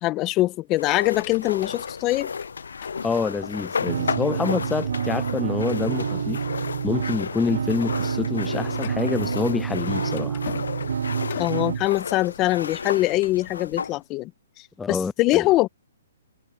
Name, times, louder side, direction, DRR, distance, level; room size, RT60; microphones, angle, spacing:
voice 1, 0.0-2.3 11.4-14.3 14.9-15.7, left 18 dB, 25° left, 1.2 m, -23 dB
sound 1, 0.8-14.0, left 5 dB, 85° left, 0.5 m, -33 dB
sound 2, 1.0-3.7 4.2-4.6 5.1-5.2 5.6-5.8 6.4-6.7 7.1-12.9, left 12 dB, 50° left, 5.2 m, -43 dB
voice 2, 3.0-6.4 6.8-10.4 14.8-15.5, left 4 dB, 10° left, 0.4 m, -27 dB
sound 3, 3.9-11.9, right 7 dB, 75° right, 0.4 m, -28 dB
hypercardioid pair, 150°, 0 cm